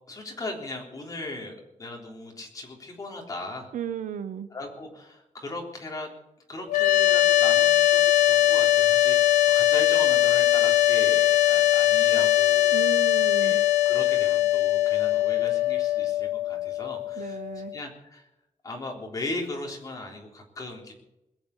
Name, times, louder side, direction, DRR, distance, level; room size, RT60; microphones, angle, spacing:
voice 1, 0.1-3.7 4.5-6.1 6.5-12.9 13.4-18.3 18.6-20.9, left 2 dB, 25° left, 0 dB, 3.6 m, -38 dB
voice 2, 3.7-4.5 12.7-13.6 17.2-17.7, right 9 dB, 85° right, 11 dB, 1.1 m, -34 dB
sound 1, 6.7-17.8, left 14 dB, 70° left, 0.6 m, -21 dB
21.5 x 7.5 x 8.3 m, 0.90 s
wide cardioid pair, 175°, 13 cm